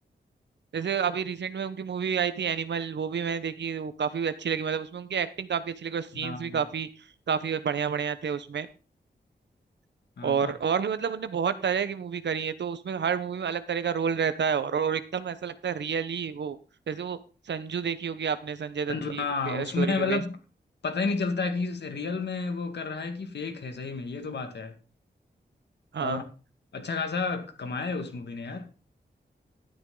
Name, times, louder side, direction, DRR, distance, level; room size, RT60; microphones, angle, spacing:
voice 1, 0.7-6.9 7.3-8.7 10.2-16.6 16.9-17.2 17.5-20.2 25.9-26.2, right 7 dB, 90° right, 0.9 m, -29 dB
voice 2, 6.1-6.6 10.2-10.5 18.9-20.4 20.8-24.8 26.0-26.2 26.7-28.7, left 4 dB, 75° left, 2.0 m, -31 dB
12.5 x 9.4 x 3.8 m
wide cardioid pair, 135°, 18 cm